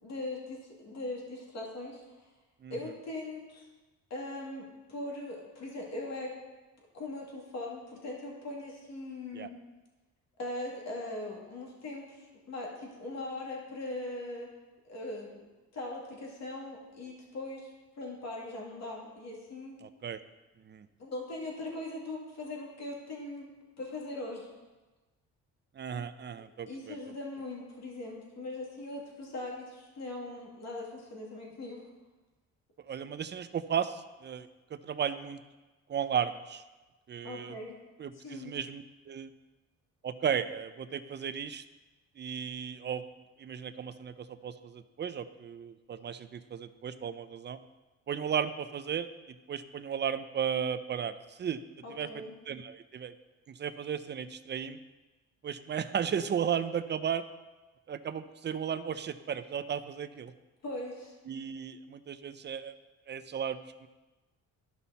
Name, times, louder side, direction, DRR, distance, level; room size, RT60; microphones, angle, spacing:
voice 1, 0.0-2.0 2.7-3.6 4.1-6.3 6.9-9.6 10.4-14.5 14.8-15.4 15.7-19.7 21.0-23.5 23.8-24.5 26.7-31.9 37.2-37.8 38.2-38.5 51.8-52.3 60.6-61.1, left 2 dB, 60° left, -2 dB, 2.6 m, -40 dB
voice 2, 19.8-20.2 20.6-20.9 25.7-27.0 32.8-35.4 35.9-36.6 37.1-37.6 38.0-39.3 40.0-41.6 42.2-43.0 43.4-47.6 48.1-51.6 51.9-52.1 52.5-53.1 53.5-54.8 55.4-57.2 57.9-60.3 61.2-62.7 63.1-63.9, right 8 dB, 35° right, 12 dB, 0.6 m, -35 dB
12.0 x 5.7 x 4.2 m, 1.2 s
cardioid pair, 90°, 30 cm